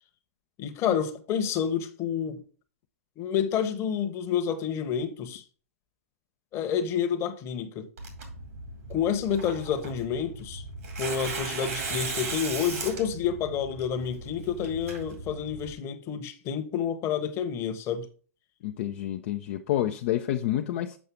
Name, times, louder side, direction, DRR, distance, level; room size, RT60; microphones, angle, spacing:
voice 1, 0.6-2.4 3.2-5.4 6.5-7.9 8.9-10.6 11.0-18.1, left 8 dB, 35° left, 1.1 m, -29 dB
Tearing, 8.0-15.7, right 3 dB, 70° right, 2.3 m, -37 dB
voice 2, 18.6-21.0, left 12 dB, 55° left, 0.5 m, -29 dB
7.2 x 5.5 x 3.5 m
hypercardioid pair, 110°, 8 cm